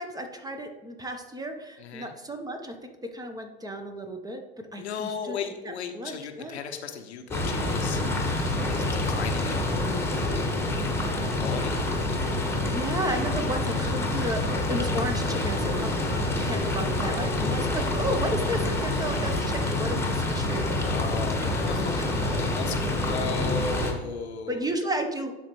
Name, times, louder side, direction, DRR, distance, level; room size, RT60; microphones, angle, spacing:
voice 1, 0.0-4.4 4.7-5.4 5.6-6.6 12.7-21.3 21.6-22.1 24.5-25.3, right 1 dB, 10° right, 5 dB, 1.0 m, -33 dB
voice 2, 1.8-2.1 4.8-8.0 8.7-9.7 10.8-11.8 13.6-14.1 16.4-16.7 20.8-24.6, left 6 dB, 80° left, 5 dB, 0.9 m, -36 dB
sound 1, 7.3-23.9, left 2 dB, 10° left, 1.5 m, -27 dB
11.0 x 4.1 x 3.2 m, 1.2 s
hypercardioid pair, 80°, 32 cm